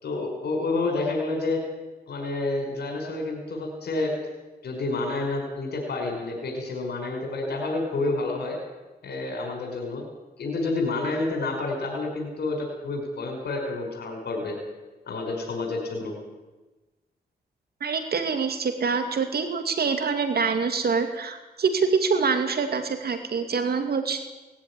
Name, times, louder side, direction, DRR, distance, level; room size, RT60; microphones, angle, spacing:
voice 1, 0.0-1.6 2.1-4.1 4.6-8.6 9.0-10.0 10.4-14.6 15.1-16.2, left 2 dB, 90° left, 2 dB, 5.3 m, -29 dB
voice 2, 17.8-24.2, right 5 dB, 70° right, 7 dB, 2.5 m, -25 dB
19.5 x 14.5 x 9.9 m, 1.2 s
cardioid pair, 70°, 17 cm